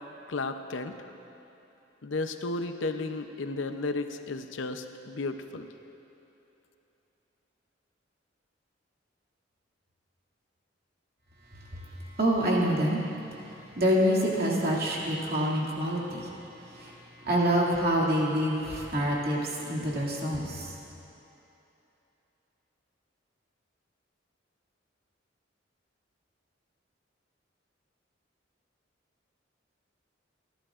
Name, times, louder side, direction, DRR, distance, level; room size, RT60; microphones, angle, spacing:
voice 1, 0.3-1.0 2.0-5.7, left 3 dB, 85° left, 7 dB, 0.7 m, -33 dB
voice 2, 11.5-16.3 16.6-20.8, equal, 55° right, -4 dB, 2.4 m, -27 dB
28.5 x 11.5 x 2.5 m, 3.0 s
head